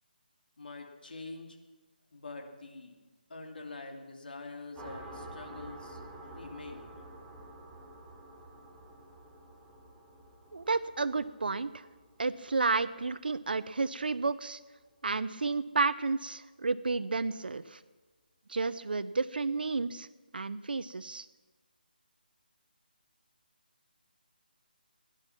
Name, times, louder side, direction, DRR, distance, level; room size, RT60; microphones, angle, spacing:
voice 1, 0.6-1.6 2.1-3.0 3.3-7.0, left 3 dB, 70° left, 3 dB, 2.7 m, -45 dB
sound 1, 4.8-14.0, right 1 dB, 5° right, 0.8 m, -50 dB
voice 2, 10.5-11.9 12.2-14.6 15.0-17.8 18.5-20.1 20.3-21.3, right 4 dB, 65° right, 15 dB, 0.7 m, -31 dB
17.5 x 11.0 x 6.0 m, 1.2 s
hypercardioid pair, 175°, 5 cm